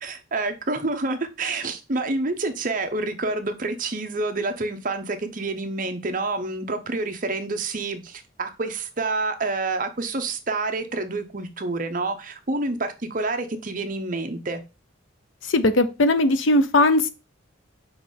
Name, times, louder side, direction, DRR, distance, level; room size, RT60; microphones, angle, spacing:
voice 1, 0.0-14.6, right 3 dB, 40° right, 0.8 m, -28 dB
voice 2, 15.5-17.1, left 2 dB, 70° left, 0.7 m, -19 dB
5.7 x 3.2 x 5.4 m
head